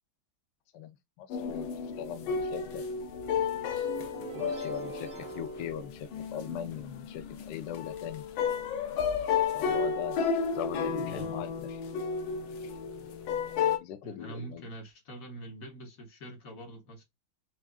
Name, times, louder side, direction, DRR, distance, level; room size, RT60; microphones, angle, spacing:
voice 1, 0.7-1.7 2.0-2.8 4.3-8.2 9.5-10.2 10.5-11.8 12.6-12.7 13.8-14.6, left 9 dB, 70° left, 1.1 m, -40 dB
sound 1, 1.3-13.8, left 6 dB, 90° left, 1.5 m, -32 dB
sound 2, 3.8-6.7, right 6 dB, 40° right, 0.6 m, -44 dB
voice 2, 11.0-11.4 14.0-17.0, right 1 dB, 50° left, 1.3 m, -44 dB
6.0 x 2.5 x 2.3 m
omnidirectional pair, 2.2 m